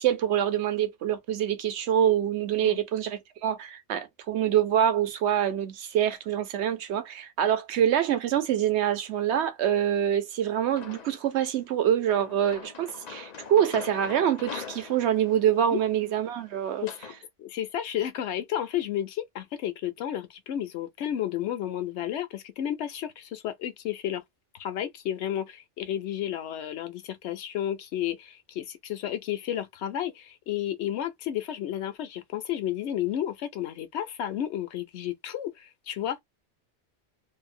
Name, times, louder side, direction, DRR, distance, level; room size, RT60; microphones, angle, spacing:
voice 1, 0.0-16.8, right 10 dB, 70° right, 0.9 m, -25 dB
sound 1, 10.8-11.4 12.1-17.2, left 6 dB, 50° left, 0.5 m, -43 dB
voice 2, 17.4-24.2 24.6-36.2, left 11 dB, 75° left, 0.9 m, -32 dB
2.7 x 2.1 x 2.5 m
omnidirectional pair, 1.2 m